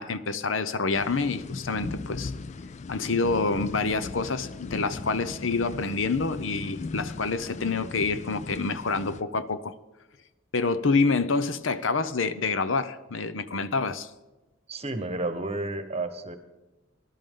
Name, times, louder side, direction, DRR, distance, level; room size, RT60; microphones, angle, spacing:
voice 1, 0.0-2.3 2.9-9.7 10.5-14.1, left 4 dB, 70° left, 13 dB, 0.8 m, -27 dB
sound 1, 0.9-9.2, left 3 dB, 35° left, 0.4 m, -38 dB
voice 2, 14.7-16.4, right 2 dB, 30° right, 9 dB, 1.2 m, -31 dB
19.5 x 12.0 x 3.8 m, 1.1 s
head